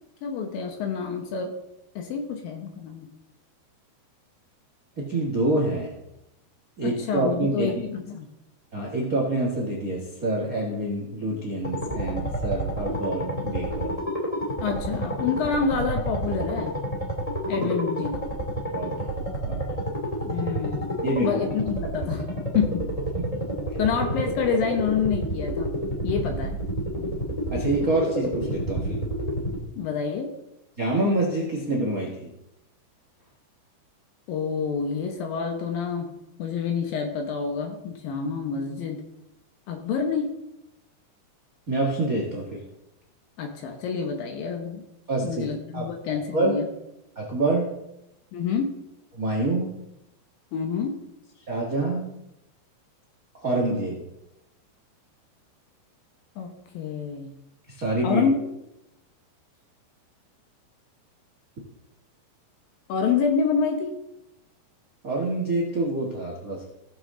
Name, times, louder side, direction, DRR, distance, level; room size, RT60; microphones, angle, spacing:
voice 1, 0.2-1.6 2.0-3.1 6.8-8.3 14.6-16.8 17.5-18.2 20.3-20.8 21.2-22.3 22.5-22.8 23.8-25.7 26.0-26.5 29.7-30.3 34.3-36.1 36.4-39.0 39.7-40.4 43.4-44.8 45.2-46.7 48.3-48.7 50.5-51.0 56.4-57.3 58.0-58.4 62.9-64.0, left 6 dB, 70° left, 4 dB, 2.4 m, -27 dB
voice 2, 5.0-5.9 6.8-7.7 8.7-13.9 17.6-17.7 18.7-18.9 19.4-19.6 21.0-21.3 23.1-23.2 23.7-23.8 27.5-29.0 30.8-32.3 41.7-42.6 45.1-45.5 45.7-45.8 46.3-46.6 47.1-47.7 49.1-49.8 51.5-52.1 53.4-54.0 57.7-58.2 65.0-66.7, right 2 dB, 90° right, -2 dB, 0.7 m, -26 dB
sound 1, 11.6-29.6, right 1 dB, 15° left, 1.5 m, -29 dB
17.5 x 7.0 x 3.8 m, 0.88 s
omnidirectional pair, 5.0 m